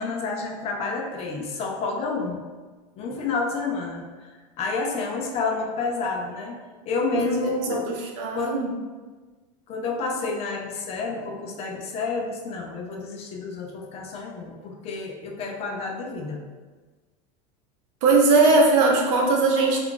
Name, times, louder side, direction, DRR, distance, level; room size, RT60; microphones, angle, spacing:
voice 1, 0.0-2.4 3.0-4.3 4.6-6.6 6.9-8.0 8.3-8.5 9.7-16.4, left 4 dB, 35° left, 1 dB, 0.4 m, -29 dB
voice 2, 7.1-8.7 18.0-19.8, right 3 dB, 65° right, -1 dB, 0.7 m, -20 dB
2.3 x 2.2 x 3.7 m, 1.3 s
supercardioid pair, 135°, 18 cm